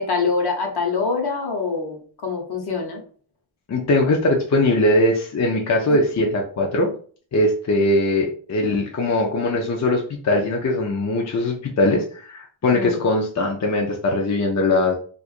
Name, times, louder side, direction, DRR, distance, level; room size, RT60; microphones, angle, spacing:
voice 1, 0.0-3.0 5.9-6.0 12.7-13.0, left 4 dB, 55° left, 3 dB, 1.0 m, -25 dB
voice 2, 3.7-6.9 7.3-14.9, left 2 dB, 35° left, 1 dB, 0.6 m, -20 dB
4.3 x 2.5 x 2.5 m, 0.43 s
wide cardioid pair, 130°, 46 cm